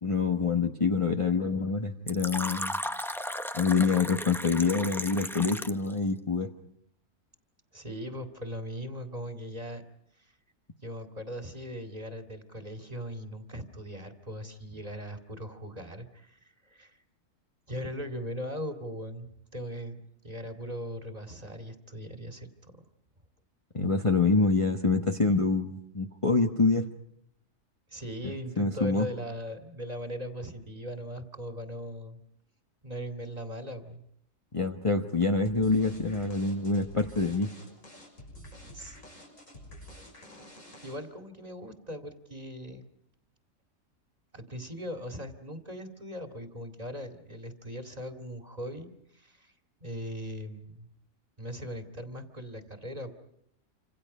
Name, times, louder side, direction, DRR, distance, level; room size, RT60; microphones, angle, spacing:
voice 1, 0.0-2.7 3.5-6.5 23.7-26.9 28.2-29.1 34.5-37.5, left 4 dB, 25° left, 3 dB, 1.2 m, -26 dB
Fill (with liquid), 2.1-5.9, equal, ahead, 0.7 m, -35 dB
voice 2, 7.7-9.8 10.8-17.0 17.7-22.7 27.9-32.2 32.8-34.0 38.7-39.0 40.8-42.9 44.3-49.5 49.8-50.9 51.4-53.1, equal, 30° right, 5 dB, 2.3 m, -39 dB
sound 1, 35.5-41.2, left 1 dB, 75° left, 6.9 m, -49 dB
28.0 x 26.0 x 5.5 m, 0.76 s
omnidirectional pair, 1.4 m